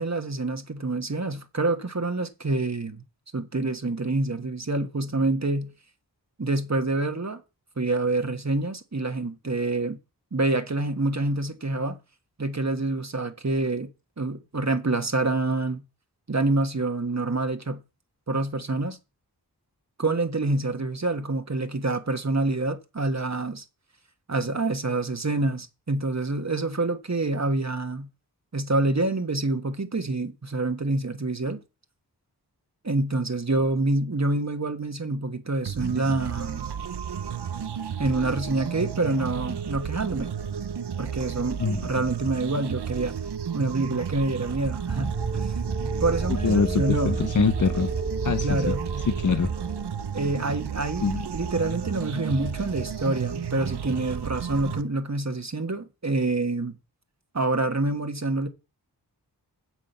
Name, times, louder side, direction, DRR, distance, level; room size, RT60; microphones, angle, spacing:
voice 1, 0.0-3.0 3.3-5.7 6.4-7.4 7.8-10.0 10.3-12.0 12.4-13.9 14.2-15.8 16.3-17.8 18.3-19.0 20.0-23.6 24.3-28.1 28.5-31.6 32.8-36.7 38.0-40.3 41.0-43.2 43.5-47.2 48.4-48.8 50.1-56.8 57.3-58.5, right 2 dB, 40° right, 1.3 m, -27 dB
sound 1, 35.6-54.8, right 7 dB, 80° right, 0.7 m, -33 dB
sound 2, 44.9-49.9, right 4 dB, 20° right, 0.7 m, -31 dB
voice 2, 46.4-47.9 48.2-49.5 51.0-51.2, left 5 dB, 50° left, 0.8 m, -24 dB
7.6 x 7.4 x 6.7 m
wide cardioid pair, 45°, 40 cm